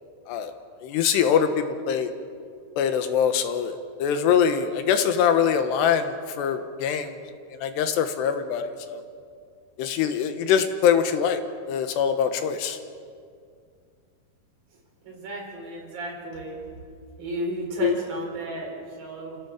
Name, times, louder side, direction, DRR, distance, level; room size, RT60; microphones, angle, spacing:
voice 1, 0.8-2.1 2.8-7.2 7.6-9.0 9.8-11.4 11.7-12.8 17.8-17.9, left 8 dB, 80° left, 8 dB, 3.3 m, -23 dB
voice 2, 15.1-16.6 17.2-19.4, right 2 dB, 60° right, -1 dB, 6.1 m, -33 dB
30.0 x 16.0 x 7.3 m, 2.3 s
omnidirectional pair, 4.9 m